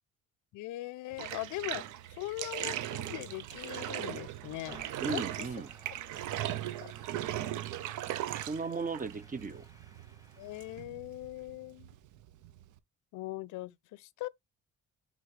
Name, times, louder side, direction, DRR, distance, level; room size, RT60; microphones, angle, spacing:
voice 1, 0.5-1.8 2.1-4.8 5.1-5.2 6.8-6.9 10.4-11.9 13.1-14.3, left 17 dB, 80° left, 0.5 m, -40 dB
Bathtub (filling or washing), 1.1-12.8, right 12 dB, 80° right, 0.7 m, -39 dB
sound 1, 4.6-10.8, right 1 dB, 10° right, 1.7 m, -58 dB
voice 2, 5.0-5.7 8.5-9.6, right 4 dB, 25° right, 0.7 m, -36 dB
10.0 x 3.9 x 3.2 m
cardioid pair, 90°, 30 cm